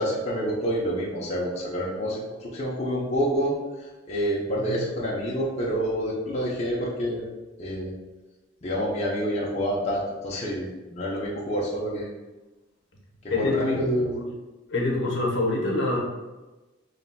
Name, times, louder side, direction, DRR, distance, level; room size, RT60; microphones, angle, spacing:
voice 1, 0.0-7.3 7.6-7.9 8.6-12.1 13.2-14.1, equal, 35° left, -5 dB, 0.7 m, -28 dB
voice 2, 13.3-14.3 14.7-16.0, left 2 dB, 65° left, -1 dB, 0.9 m, -25 dB
5.6 x 3.2 x 2.2 m, 1.1 s
head